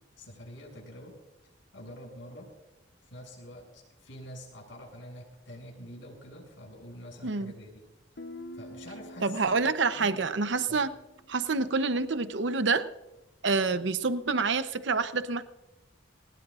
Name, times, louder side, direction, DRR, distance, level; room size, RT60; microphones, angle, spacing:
voice 1, 0.2-1.1 1.7-2.5 3.0-7.8 8.5-10.3 10.7-10.8, equal, 80° left, 0 dB, 6.9 m, -46 dB
voice 2, 7.2-7.5 9.2-10.9 11.3-12.9 13.4-15.4, right 4 dB, 75° right, 11 dB, 0.8 m, -27 dB
Guitar, 8.2-11.8, left 1 dB, 60° left, 0.7 m, -47 dB
21.0 x 19.5 x 2.5 m, 0.99 s
head